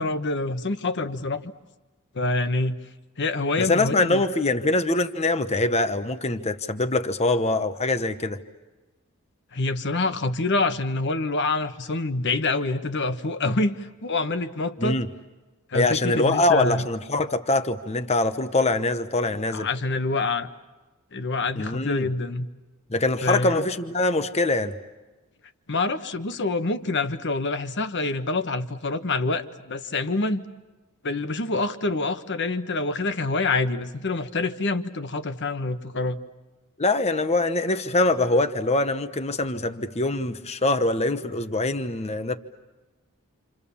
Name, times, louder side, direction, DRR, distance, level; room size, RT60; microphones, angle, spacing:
voice 1, 0.0-1.4 2.1-2.8 3.2-4.2 9.5-15.0 15.7-16.8 19.5-20.5 21.1-22.5 23.2-23.5 25.7-30.4 31.0-36.2, left 3 dB, 55° left, 10 dB, 1.3 m, -26 dB
voice 2, 3.6-8.4 14.8-15.1 15.7-19.7 21.6-22.1 22.9-24.7 36.8-42.4, left 2 dB, 30° left, 9 dB, 1.0 m, -23 dB
28.5 x 28.0 x 7.1 m, 1.2 s
head